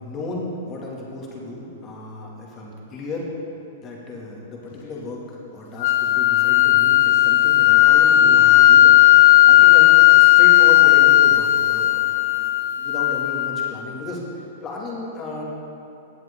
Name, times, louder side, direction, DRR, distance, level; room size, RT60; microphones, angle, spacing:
voice 1, 0.0-3.3 3.8-15.4, left 2 dB, 30° left, -2 dB, 2.5 m, -34 dB
sound 1, 5.8-13.8, left 15 dB, 60° left, 0.5 m, -14 dB
17.0 x 7.5 x 3.9 m, 2.7 s
hypercardioid pair, 125°, 0 cm